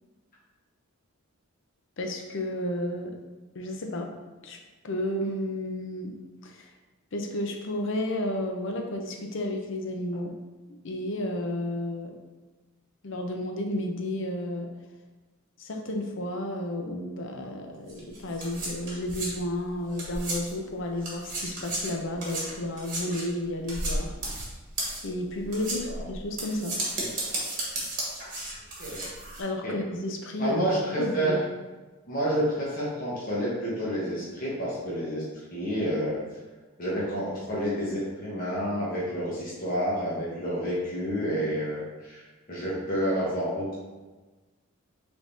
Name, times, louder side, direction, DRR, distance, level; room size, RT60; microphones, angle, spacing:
voice 1, 2.0-3.1 3.5-4.1 4.4-4.6 4.8-6.1 6.4-6.7 7.1-10.3 10.8-12.2 13.0-14.7 15.6-24.1 25.0-26.8 29.4-30.6 31.0-31.3, left 1 dB, 60° left, 3 dB, 0.6 m, -32 dB
sound 1, 17.9-20.7 21.0-29.4, right 2 dB, 40° right, 1.2 m, -34 dB
voice 2, 30.4-31.3 32.1-35.2 35.5-36.2 36.8-43.8, equal, 40° left, -7 dB, 1.0 m, -29 dB
5.1 x 3.5 x 2.6 m, 1.2 s
head